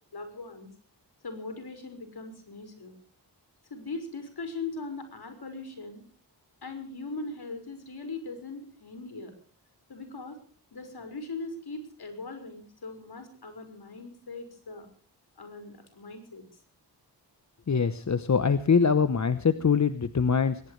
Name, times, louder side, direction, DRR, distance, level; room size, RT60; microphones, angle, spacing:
voice 1, 0.1-0.7 1.2-3.0 3.7-6.0 6.6-9.3 9.9-10.4 10.7-14.9 15.4-16.5, left 3 dB, 60° left, 7 dB, 5.7 m, -40 dB
voice 2, 17.7-20.6, left 6 dB, 40° left, 12 dB, 1.0 m, -23 dB
21.5 x 20.0 x 3.3 m, 0.41 s
wide cardioid pair, 80°, 43 cm